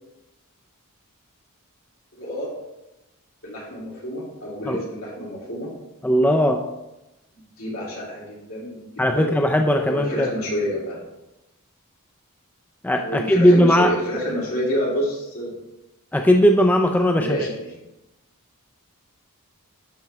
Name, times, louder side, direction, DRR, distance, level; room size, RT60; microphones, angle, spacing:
voice 1, 2.1-2.5 3.4-5.7 7.6-9.3 9.8-11.0 13.0-15.5 17.2-17.7, equal, 65° left, -6 dB, 2.9 m, -28 dB
voice 2, 6.0-6.6 9.0-10.3 12.8-13.9 16.1-17.4, equal, 5° left, 3 dB, 0.3 m, -18 dB
11.5 x 4.4 x 3.4 m, 0.96 s
head